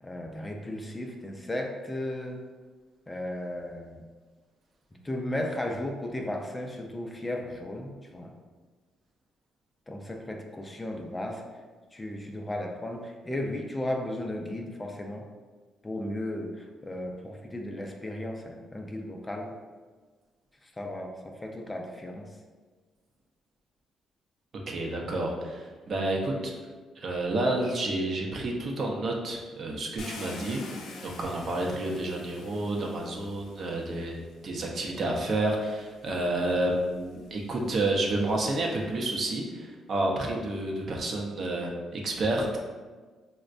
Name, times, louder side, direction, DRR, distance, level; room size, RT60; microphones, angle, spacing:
voice 1, 0.0-2.4 3.1-4.0 5.0-8.3 9.9-11.4 11.9-15.2 15.8-19.5 20.8-22.3, left 1 dB, 20° left, 2 dB, 0.4 m, -35 dB
voice 2, 24.7-26.5 27.0-30.6 31.0-42.6, right 2 dB, 50° right, 0 dB, 0.6 m, -30 dB
Car, 30.0-34.1 35.0-35.1 35.7-38.9, left 3 dB, 80° left, 0.5 m, -46 dB
4.2 x 2.1 x 2.5 m, 1.4 s
cardioid pair, 90°, 0 cm